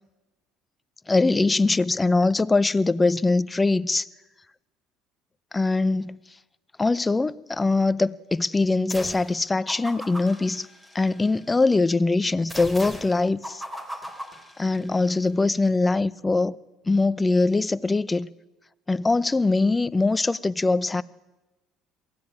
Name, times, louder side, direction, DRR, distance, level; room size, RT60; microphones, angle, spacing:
voice 1, 1.1-4.1 5.5-6.2 6.8-10.7 10.9-13.6 14.6-16.6 16.9-18.3 18.9-21.0, left 3 dB, 20° left, 0.7 m, -22 dB
sound 1, 8.9-9.4 9.7-11.4 12.5-15.1, equal, 10° right, 3.5 m, -39 dB
22.5 x 16.0 x 9.7 m
supercardioid pair, 85°, 0 cm